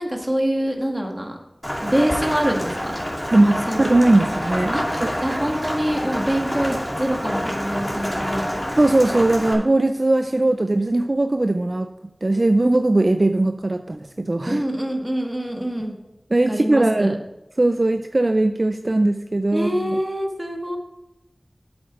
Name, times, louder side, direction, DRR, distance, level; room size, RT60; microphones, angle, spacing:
voice 1, 0.0-1.4 1.8-3.0 3.4-3.9 4.7-8.5 10.5-10.6 14.5-15.9 16.5-17.2 19.5-20.8, equal, 20° right, 2 dB, 2.1 m, -25 dB
Rain, 1.6-9.5, equal, 10° left, 2.7 m, -27 dB
voice 2, 3.3-4.8 5.0-5.4 8.8-11.9 12.2-14.6 16.3-17.2 17.6-20.0, right 2 dB, 55° right, 7 dB, 0.5 m, -19 dB
8.0 x 7.9 x 4.9 m, 0.94 s
wide cardioid pair, 40°, 0 cm